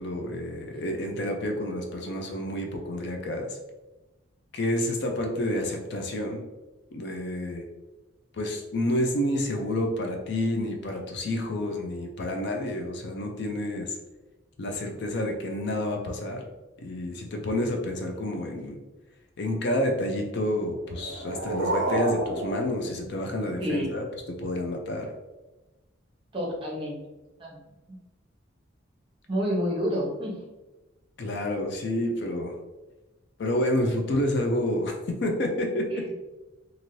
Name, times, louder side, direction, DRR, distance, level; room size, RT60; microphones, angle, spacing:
voice 1, 0.0-3.6 4.5-6.4 6.9-7.6 8.4-14.0 14.6-16.5 16.8-18.8 19.4-25.1 31.2-32.5 33.4-34.9 35.2-36.0, left 1 dB, 60° left, 3 dB, 0.4 m, -29 dB
sound 1, 20.8-23.8, right 2 dB, 60° right, 0.5 m, -30 dB
voice 2, 23.6-23.9 26.3-27.0 27.4-27.6 27.9-28.0 29.3-30.3 35.9-36.1, equal, 25° right, -3 dB, 0.8 m, -29 dB
2.6 x 2.6 x 3.0 m, 1.1 s
head